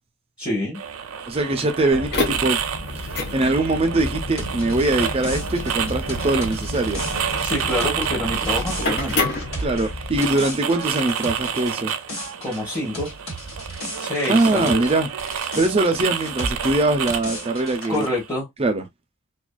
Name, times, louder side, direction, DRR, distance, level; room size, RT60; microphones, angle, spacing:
voice 1, 0.4-0.8 7.4-9.3 12.4-13.1 14.0-14.8 17.9-18.5, left 1 dB, 20° left, 1.0 m, -26 dB
sound 1, 0.7-18.3, right 8 dB, 80° right, 0.4 m, -30 dB
voice 2, 1.3-2.6 3.3-7.0 9.6-11.9 14.3-15.1 15.6-18.1 18.6-18.8, right 2 dB, 30° right, 0.5 m, -22 dB
sound 2, 1.9-10.2, left 2 dB, 50° left, 0.7 m, -29 dB
sound 3, 4.4-14.9 15.2-18.1, equal, 85° left, 1.5 m, -35 dB
2.5 x 2.3 x 2.2 m
head